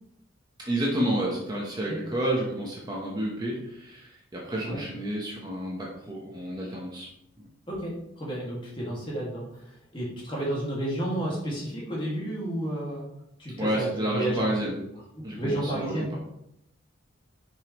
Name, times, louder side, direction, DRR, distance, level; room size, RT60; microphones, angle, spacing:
voice 1, 0.6-7.1 7.4-7.5 13.6-14.8 15.2-16.2, right 1 dB, 20° right, -4 dB, 0.9 m, -30 dB
voice 2, 7.7-13.1 13.4-14.6 15.2-16.2, right 1 dB, 25° left, -5 dB, 1.9 m, -32 dB
6.4 x 5.2 x 3.0 m, 0.78 s
head